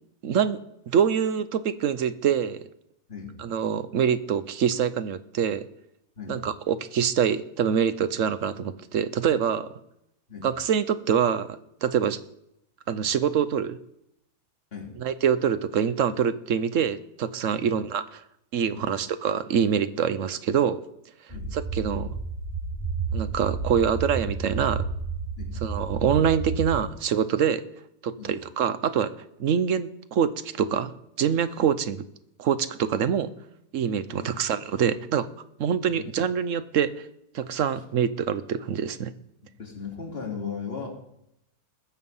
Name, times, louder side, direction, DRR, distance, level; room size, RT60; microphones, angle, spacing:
voice 1, 0.2-0.6 0.9-2.6 3.4-5.6 6.3-9.8 10.4-12.2 12.9-13.8 15.0-18.2 18.5-20.8 21.5-22.2 23.1-24.8 25.6-27.6 28.0-29.1 29.4-32.0 32.4-33.3 33.7-35.3 35.6-37.1 37.3-39.1, right 8 dB, 60° right, 13 dB, 1.0 m, -25 dB
sound 1, 21.3-26.8, right 4 dB, 5° right, 3.8 m, -31 dB
voice 2, 34.1-34.4 35.8-36.1 39.6-40.9, left 6 dB, 40° left, -1 dB, 3.1 m, -37 dB
20.5 x 7.1 x 5.5 m, 0.79 s
omnidirectional pair, 1.6 m